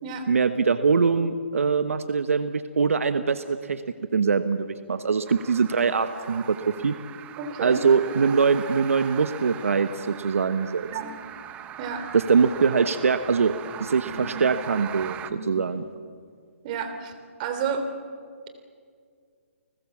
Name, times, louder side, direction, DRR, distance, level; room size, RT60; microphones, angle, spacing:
voice 1, 0.3-3.8 4.1-7.0 7.6-10.9 12.1-13.5 13.8-15.8, right 5 dB, 80° right, 11 dB, 1.1 m, -23 dB
sound 1, 5.3-15.3, right 10 dB, 15° right, 0.8 m, -40 dB
voice 2, 7.4-7.8 10.9-11.1 11.8-12.0 14.1-14.4 15.3-15.6 16.6-17.1 17.4-17.9, right 6 dB, 35° right, 7 dB, 3.3 m, -31 dB
30.0 x 20.0 x 7.3 m, 2.2 s
hypercardioid pair, 150°, 7 cm